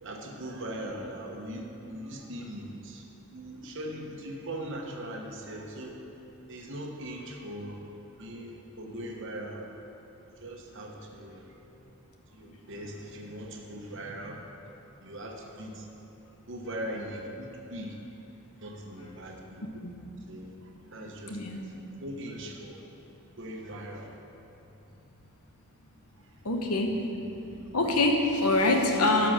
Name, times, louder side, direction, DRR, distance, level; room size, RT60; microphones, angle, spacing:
voice 1, 0.0-3.0 3.3-6.0 6.5-7.8 8.2-9.7 10.4-11.5 12.3-14.4 15.0-15.9 16.5-18.0 18.6-19.7 20.3-21.6 22.0-22.8 23.4-24.1, right 1 dB, 55° right, 1 dB, 1.1 m, -40 dB
voice 2, 21.3-21.7 26.4-26.9 27.7-29.3, left 2 dB, 90° left, 3 dB, 1.2 m, -25 dB
12.5 x 4.9 x 6.4 m, 3.0 s
head